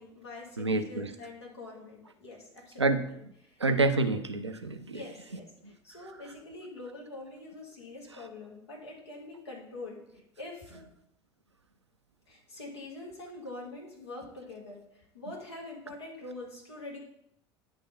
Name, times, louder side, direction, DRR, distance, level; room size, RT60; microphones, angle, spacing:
voice 1, 0.0-3.2 3.4-3.6 4.9-10.7 12.3-17.0, left 2 dB, 80° left, -2 dB, 2.0 m, -45 dB
voice 2, 0.6-1.1 2.8-3.1 3.6-5.0 5.6-5.7, right 3 dB, 90° right, 8 dB, 0.5 m, -28 dB
9.6 x 3.5 x 5.6 m, 0.76 s
figure-of-eight pair, 65°, 14 cm